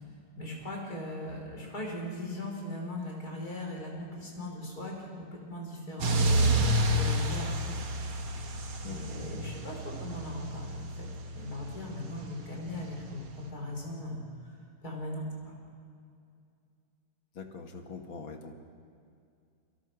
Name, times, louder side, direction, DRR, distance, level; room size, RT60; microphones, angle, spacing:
voice 1, 0.4-6.6 6.9-7.8 8.8-11.1 11.3-14.2 14.8-15.6, left 1 dB, 45° left, 0 dB, 5.7 m, -39 dB
sound 1, 6.0-13.5, right 1 dB, 90° right, 2.8 m, -30 dB
voice 2, 17.4-18.5, left 5 dB, 70° left, 4 dB, 2.8 m, -43 dB
29.0 x 25.0 x 6.3 m, 2.4 s
omnidirectional pair, 2.3 m